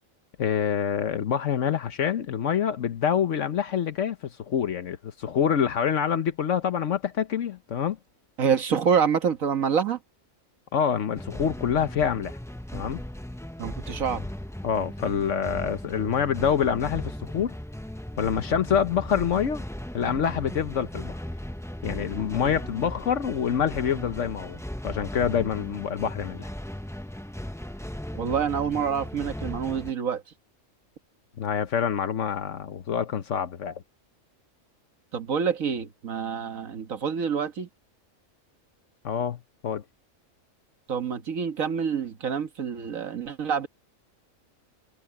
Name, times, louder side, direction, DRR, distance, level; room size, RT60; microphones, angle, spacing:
voice 1, 0.4-8.0 10.7-12.4 12.7-13.0 14.6-17.5 18.2-19.6 19.9-21.2 21.8-24.6 24.8-26.5 31.4-33.8 39.0-39.8, left 8 dB, 65° left, 1.2 m, -26 dB
voice 2, 8.4-10.0 13.6-14.3 28.1-30.2 35.1-37.7 40.9-43.7, right 7 dB, 90° right, 1.8 m, -27 dB
Epic trailer action music, 11.1-29.9, left 1 dB, 5° left, 0.4 m, -37 dB
omnidirectional pair, 1.4 m